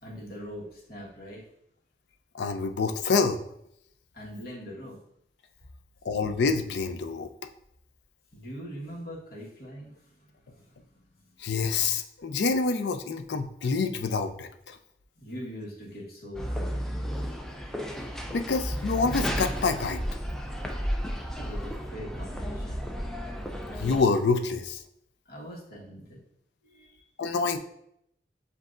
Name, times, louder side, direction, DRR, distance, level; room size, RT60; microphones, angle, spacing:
voice 1, 0.0-1.4 4.1-5.0 8.3-11.0 15.2-17.1 21.4-22.9 25.3-26.2 26.6-27.0, equal, 55° left, -4 dB, 1.4 m, -42 dB
voice 2, 2.3-3.4 6.0-7.3 11.4-14.8 18.3-20.0 23.8-24.8 27.2-27.6, left 4 dB, 75° left, 7 dB, 0.4 m, -27 dB
sound 1, 16.3-24.0, equal, 5° left, 0.3 m, -33 dB
7.4 x 2.7 x 2.5 m, 0.74 s
head